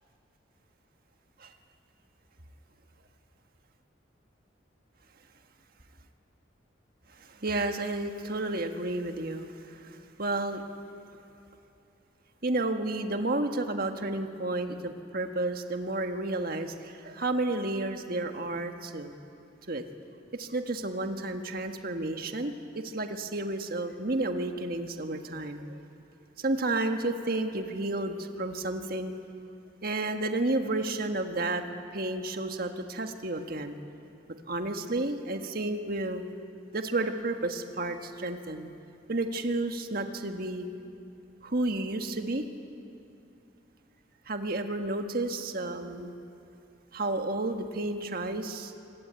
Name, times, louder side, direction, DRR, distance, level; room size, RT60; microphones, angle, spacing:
voice 1, 7.1-10.6 12.4-19.1 19.7-19.8 20.3-25.8 26.4-29.1 29.8-31.6 31.9-33.7 34.5-36.2 36.7-38.7 39.1-40.7 41.4-42.5 44.3-46.1 46.9-48.7, right 2 dB, 50° right, 6 dB, 1.6 m, -31 dB
25.0 x 21.0 x 9.0 m, 2.7 s
head